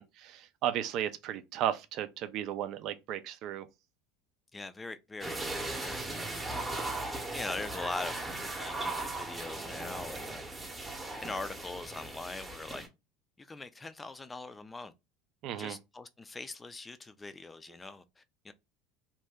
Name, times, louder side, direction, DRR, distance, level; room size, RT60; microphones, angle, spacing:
voice 1, 0.0-3.7 15.4-15.8, right 10 dB, 55° right, 0.4 m, -34 dB
voice 2, 4.5-8.3 8.6-10.5 11.2-12.8 13.4-14.9 15.6-18.5, left 3 dB, 15° left, 0.4 m, -42 dB
sound 1, 5.2-12.9, right 2 dB, 15° right, 0.8 m, -38 dB
2.7 x 2.2 x 3.4 m
hypercardioid pair, 85°, 0 cm